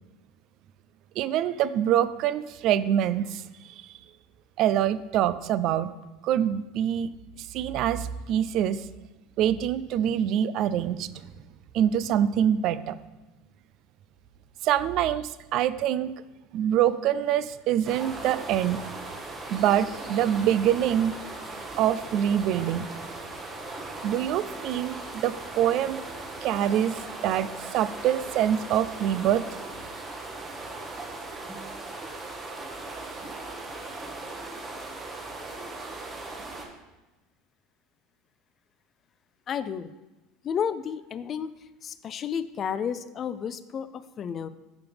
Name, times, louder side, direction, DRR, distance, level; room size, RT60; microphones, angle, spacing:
voice 1, 1.2-3.4 4.6-5.9 6.2-7.1 7.5-8.8 9.4-11.1 11.7-12.9 14.6-16.1 16.5-18.8 19.5-21.1 21.8-22.8 24.0-26.0 26.4-29.4, right 10 dB, 55° right, 15 dB, 0.4 m, -25 dB
sound 1, 17.8-36.7, right 2 dB, 25° right, 1.6 m, -38 dB
voice 2, 39.5-39.9 40.4-41.5 41.8-44.5, left 7 dB, 40° left, 15 dB, 0.4 m, -31 dB
7.9 x 6.8 x 3.4 m, 1.1 s
hypercardioid pair, 90°, 0 cm